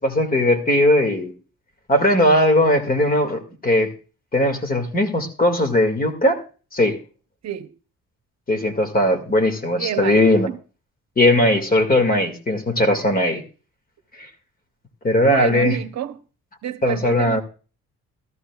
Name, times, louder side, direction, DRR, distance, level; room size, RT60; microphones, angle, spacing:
voice 1, 0.0-1.3 1.9-3.9 4.3-6.4 6.7-7.0 8.5-10.5 11.2-13.4 14.1-14.3 15.0-15.8 16.8-17.4, left 1 dB, 30° left, 2.1 m, -18 dB
voice 2, 7.4-7.7 9.8-10.6 15.3-16.2 16.6-17.4, right 11 dB, 60° right, 0.9 m, -28 dB
14.5 x 13.5 x 2.4 m
cardioid pair, 90°, 30 cm